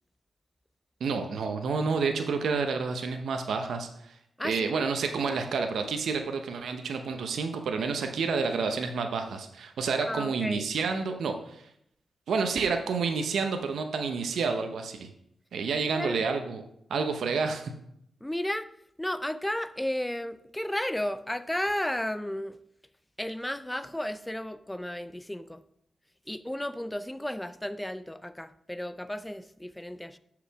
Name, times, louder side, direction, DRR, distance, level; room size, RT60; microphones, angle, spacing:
voice 1, 1.0-4.2 4.4-11.7 12.3-15.1 15.5-16.6 16.9-17.7, right 5 dB, 80° right, 5 dB, 0.8 m, -29 dB
voice 2, 4.4-4.9 10.1-10.7 15.9-16.2 18.2-18.7 19.0-22.6 23.2-25.6 26.3-30.2, left 1 dB, 10° left, 13 dB, 0.6 m, -33 dB
6.7 x 5.0 x 6.1 m, 0.73 s
supercardioid pair, 50°, 0 cm